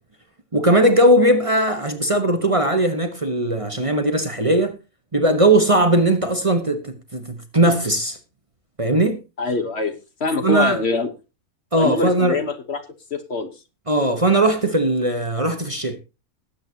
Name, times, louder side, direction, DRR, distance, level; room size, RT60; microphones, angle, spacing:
voice 1, 0.5-4.8 5.1-8.2 8.8-9.2 10.4-10.8 11.7-12.4 13.9-16.0, right 1 dB, 25° right, 1.2 m, -19 dB
voice 2, 9.4-9.9 10.2-11.1 11.8-12.8 13.1-13.5, left 3 dB, 50° left, 1.4 m, -23 dB
19.5 x 8.4 x 2.8 m
omnidirectional pair, 1.5 m